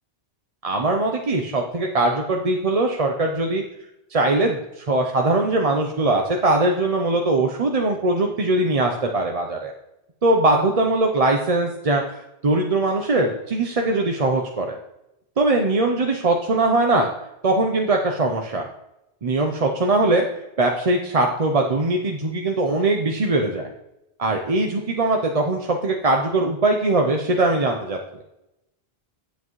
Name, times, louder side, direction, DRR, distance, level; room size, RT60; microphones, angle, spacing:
voice 1, 0.6-3.6 4.1-9.7 10.2-14.8 15.4-17.1 17.4-18.6 19.2-23.7 24.2-28.0, right 2 dB, 40° right, 2 dB, 0.7 m, -21 dB
9.6 x 8.2 x 3.1 m, 0.90 s
omnidirectional pair, 1.1 m